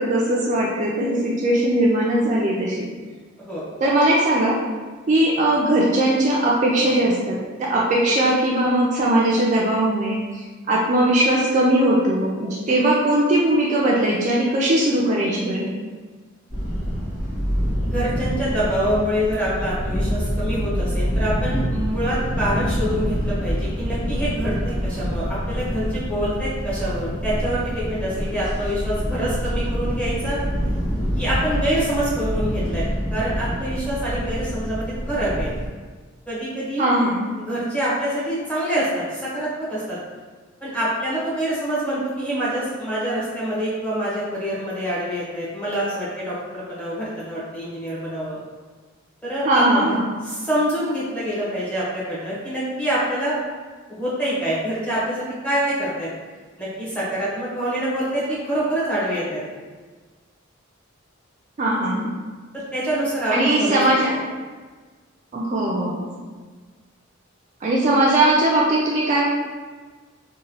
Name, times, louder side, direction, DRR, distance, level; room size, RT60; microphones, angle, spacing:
voice 1, 0.0-2.9 3.8-4.6 5.1-15.7 36.8-37.3 49.4-50.2 61.6-62.1 63.3-64.2 65.3-66.2 67.6-69.2, right 1 dB, 35° right, -4 dB, 0.3 m, -20 dB
sound 1, 16.5-35.7, equal, 45° left, 1.2 m, -26 dB
voice 2, 17.8-30.4 31.1-32.8 33.1-35.5 36.3-36.9 37.4-40.0 40.6-48.4 49.2-50.0 50.2-53.4 53.9-56.1 56.6-59.4 62.7-63.8, right 1 dB, 5° left, -9 dB, 0.9 m, -26 dB
2.9 x 2.2 x 2.8 m, 1.4 s
head